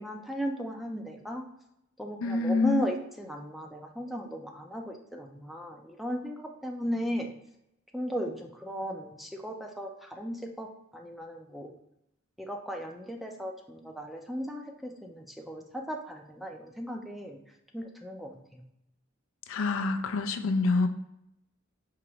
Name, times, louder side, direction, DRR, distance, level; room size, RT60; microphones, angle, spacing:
voice 1, 0.0-1.4 2.0-7.3 7.9-10.7 10.9-11.7 12.4-17.4 17.7-18.6, equal, ahead, 2 dB, 0.4 m, -36 dB
voice 2, 2.2-2.8 19.5-20.9, left 3 dB, 70° left, 8 dB, 0.4 m, -26 dB
4.7 x 3.0 x 2.9 m, 0.83 s
head